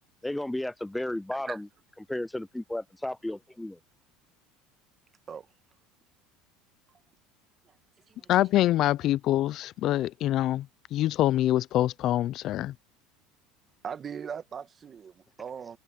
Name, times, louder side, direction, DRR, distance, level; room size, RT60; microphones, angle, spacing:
voice 1, 0.2-1.7 2.1-3.8, left 1 dB, 5° left, 0.4 m, -33 dB
voice 2, 8.3-12.8, left 14 dB, 50° left, 0.6 m, -25 dB
voice 3, 13.8-15.8, right 7 dB, 30° right, 1.7 m, -39 dB
supercardioid pair, 120°, 0 cm